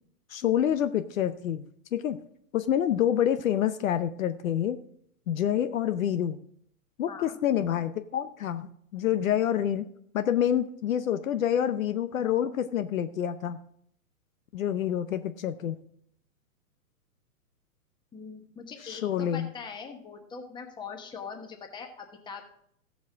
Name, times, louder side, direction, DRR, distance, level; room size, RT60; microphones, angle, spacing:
voice 1, 0.3-1.6 1.9-2.2 2.5-4.8 5.3-6.4 7.0-8.7 8.9-9.8 10.1-13.6 14.5-15.8 18.8-19.5, left 10 dB, 60° left, 10 dB, 0.8 m, -27 dB
voice 2, 18.1-22.4, left 5 dB, 10° left, 3 dB, 1.2 m, -42 dB
15.0 x 7.3 x 3.6 m, 0.66 s
hypercardioid pair, 130°, 45 cm